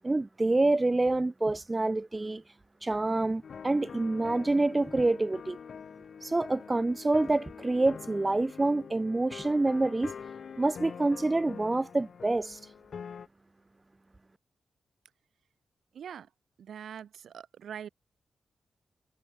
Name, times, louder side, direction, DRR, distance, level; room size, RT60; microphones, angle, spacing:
voice 1, 0.0-2.4 2.8-5.6 6.2-10.1 10.6-12.6, right 2 dB, 15° right, 0.5 m, -27 dB
sound 1, 3.4-13.3, left 6 dB, 55° left, 5.7 m, -45 dB
voice 2, 15.9-16.3 16.6-17.9, right 8 dB, 85° right, 2.5 m, -43 dB
wide cardioid pair, 160°, 0 cm